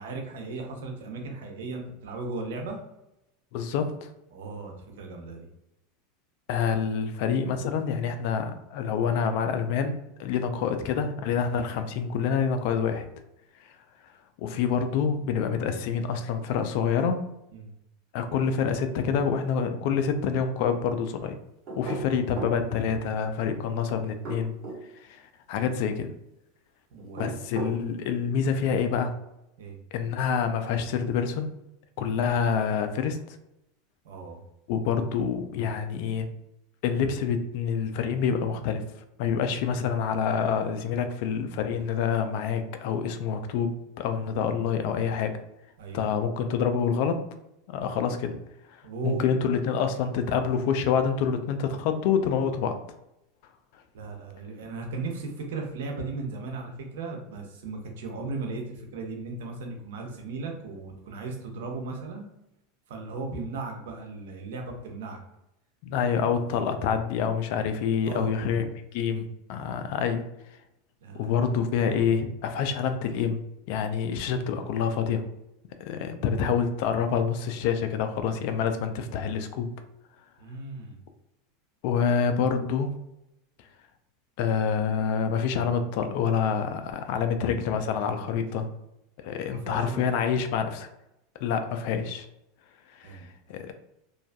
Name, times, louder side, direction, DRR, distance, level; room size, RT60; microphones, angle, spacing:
voice 1, 0.0-2.8 4.3-5.5 17.5-17.7 26.9-27.3 29.6-29.8 34.0-34.4 45.8-46.0 48.8-49.2 53.9-62.2 62.9-65.2 68.0-68.3 71.0-71.6 80.4-81.0 89.4-90.3 93.0-93.3, right 3 dB, 80° right, 2 dB, 0.6 m, -36 dB
voice 2, 3.5-4.1 6.5-13.1 14.4-17.2 18.1-21.4 21.8-24.5 25.0-25.2 25.5-26.1 27.2-29.1 29.9-31.5 32.0-33.2 34.7-36.3 36.8-38.8 39.2-45.4 45.9-47.2 47.7-48.4 48.7-52.8 65.8-70.2 71.1-73.4 73.7-75.2 75.8-79.7 81.8-82.9 84.4-88.7 89.2-90.9 91.4-92.3 93.0-93.2 93.5-93.7, left 6 dB, 65° left, 8 dB, 0.3 m, -27 dB
sound 1, 21.7-22.6 24.1-24.8 27.0-27.8, right 3 dB, 45° right, 1.0 m, -35 dB
2.5 x 2.3 x 2.2 m, 0.86 s
supercardioid pair, 115°, 0 cm